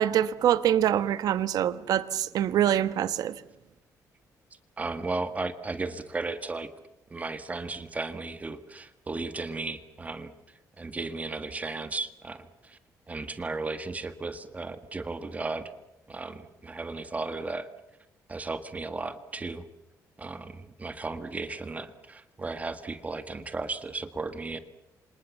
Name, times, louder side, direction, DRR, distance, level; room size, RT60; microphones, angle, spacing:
voice 1, 0.0-3.3, right 10 dB, 75° right, 1.3 m, -25 dB
voice 2, 4.8-6.7 7.1-10.3 10.8-12.8 13.1-15.7 16.1-17.7 18.3-19.6 20.2-24.6, right 3 dB, 20° right, 1.7 m, -35 dB
28.5 x 26.5 x 7.2 m
cardioid pair, 125°, 7 cm